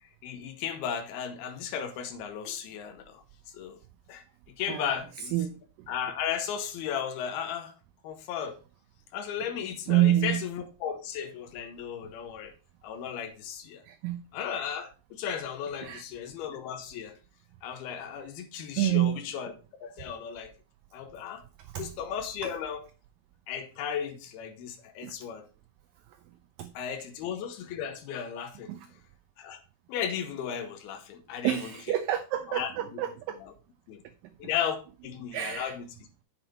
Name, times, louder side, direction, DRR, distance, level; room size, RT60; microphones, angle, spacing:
voice 1, 0.0-3.2 3.5-3.8 4.1-4.2 4.6-5.3 5.9-7.7 8.0-8.6 9.1-12.5 12.8-13.8 14.3-17.1 17.6-19.5 19.8-20.5 20.9-21.4 21.8-22.8 23.5-25.4 26.7-28.7 29.4-29.6 29.9-31.7 32.5-33.0 33.4-33.5 33.9-34.0 34.4-34.8 35.0-35.9, left 8 dB, 85° left, 2.8 m, -35 dB
voice 2, 9.9-10.4 13.9-14.2 15.8-16.0 18.8-19.1 21.7-21.9 22.4-22.5 25.0-25.1 26.6-26.7 28.7-28.9 31.4-33.4 35.3-35.7, right 13 dB, 80° right, 2.0 m, -27 dB
7.9 x 6.0 x 4.4 m
omnidirectional pair, 4.4 m